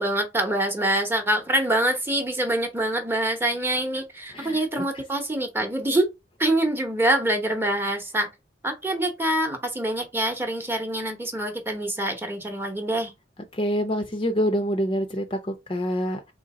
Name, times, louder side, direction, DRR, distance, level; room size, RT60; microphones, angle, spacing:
voice 1, 0.0-6.1 6.4-8.3 8.6-13.1, right 1 dB, 10° right, 0.9 m, -25 dB
voice 2, 4.3-4.8 13.6-16.3, equal, 30° left, 0.6 m, -26 dB
3.8 x 3.0 x 4.2 m
head